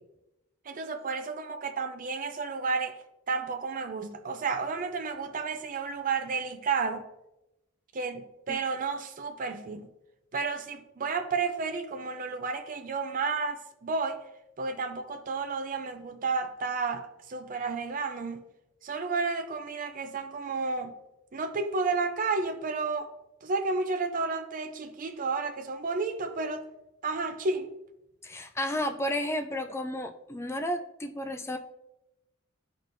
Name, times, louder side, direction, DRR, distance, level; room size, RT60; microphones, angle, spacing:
voice 1, 0.7-2.9 3.3-7.0 7.9-9.9 10.3-14.2 14.6-18.4 18.8-21.0 21.3-23.1 23.4-26.7 27.0-27.7, right 4 dB, 40° right, 0.5 m, -31 dB
voice 2, 28.2-31.6, left 1 dB, 10° left, 0.5 m, -32 dB
12.5 x 4.5 x 2.6 m
head